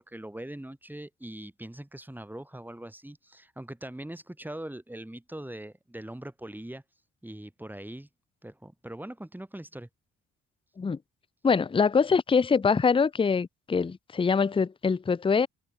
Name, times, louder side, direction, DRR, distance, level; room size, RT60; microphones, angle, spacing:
voice 1, 0.0-6.8 7.2-8.1 8.4-9.9, right 1 dB, 5° right, 3.7 m, -41 dB
voice 2, 11.4-15.5, left 5 dB, 15° left, 0.6 m, -24 dB
cardioid pair, 90°, 30 cm